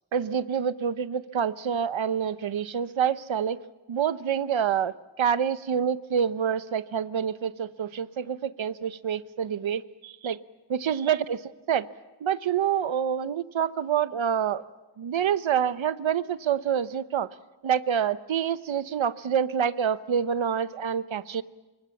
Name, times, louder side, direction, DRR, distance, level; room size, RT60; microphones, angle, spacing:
voice 1, 0.1-3.6 3.9-10.4 10.7-11.4 11.7-11.9 12.2-14.6 15.0-17.3 17.6-21.4, right 8 dB, 80° right, 13 dB, 1.0 m, -27 dB
26.5 x 24.0 x 7.2 m, 1.1 s
wide cardioid pair, 100°, 47 cm